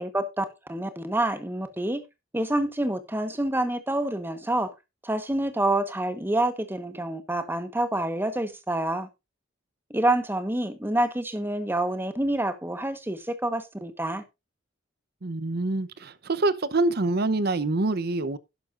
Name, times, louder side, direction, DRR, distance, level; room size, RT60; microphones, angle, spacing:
voice 1, 0.0-2.0 2.3-4.7 5.0-9.1 9.9-14.2, right 1 dB, 10° right, 1.2 m, -27 dB
voice 2, 15.2-18.4, right 2 dB, 55° right, 0.8 m, -26 dB
11.5 x 11.0 x 2.5 m
head